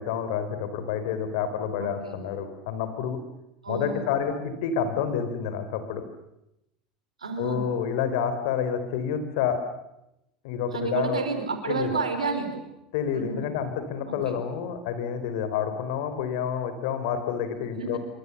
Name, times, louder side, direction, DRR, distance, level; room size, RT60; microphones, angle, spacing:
voice 1, 0.0-3.2 3.7-6.0 7.4-9.6 10.4-11.2 11.7-11.9 12.9-18.0, left 7 dB, 60° left, 9 dB, 3.9 m, -29 dB
voice 2, 1.8-2.2 3.6-4.1 7.2-7.6 10.7-12.6 13.1-13.6 14.0-14.4 17.6-18.0, right 4 dB, 80° right, 7 dB, 4.3 m, -31 dB
27.0 x 24.5 x 7.0 m, 0.85 s
figure-of-eight pair, 80°, 4 cm